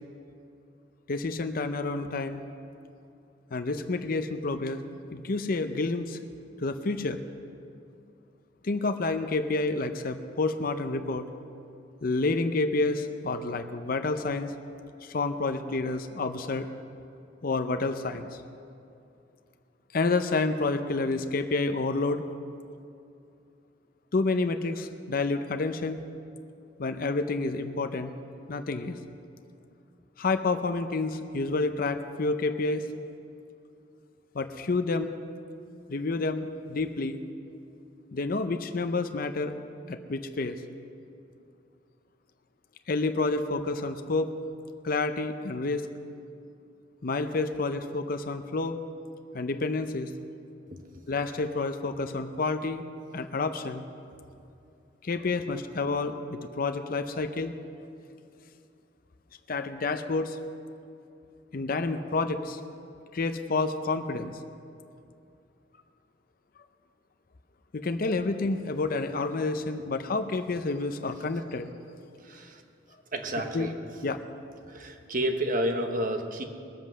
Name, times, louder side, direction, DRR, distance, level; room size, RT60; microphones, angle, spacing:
voice 1, 1.1-2.4 3.5-4.8 5.1-6.2 6.6-7.2 8.6-11.3 12.0-14.5 15.0-16.7 17.4-18.3 19.9-22.2 24.1-26.0 26.8-28.1 28.5-29.0 30.2-32.9 34.3-35.1 35.9-37.2 38.1-39.5 39.9-40.6 42.9-44.3 44.8-45.9 47.0-48.8 49.3-50.1 51.1-52.8 53.1-53.8 55.0-57.5 59.5-60.4 61.5-62.6 63.1-64.4 67.7-71.7 73.5-73.7 74.0-74.2, left 3 dB, 55° left, 7 dB, 0.6 m, -29 dB
voice 2, 50.7-51.0 72.2-72.6 73.1-73.7 74.7-76.4, right 1 dB, 50° right, 5 dB, 1.1 m, -31 dB
20.0 x 7.8 x 6.2 m, 2.5 s
head